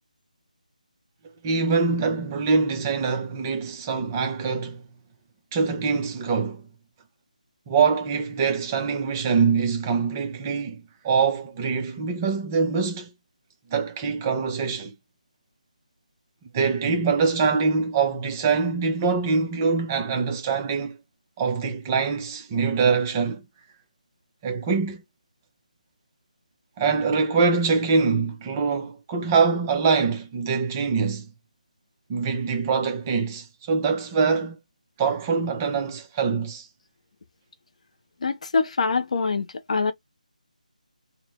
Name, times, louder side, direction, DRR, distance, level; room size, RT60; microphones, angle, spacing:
voice 1, 1.4-4.8 5.5-6.6 7.7-13.1 13.7-14.9 16.5-21.0 21.4-23.4 24.4-25.0 26.8-31.3 32.1-34.6 35.0-36.7, right 5 dB, 20° right, 0.5 m, -24 dB
voice 2, 38.2-39.9, left 4 dB, 55° left, 0.6 m, -24 dB
2.9 x 2.0 x 3.0 m
figure-of-eight pair, 160°, 4 cm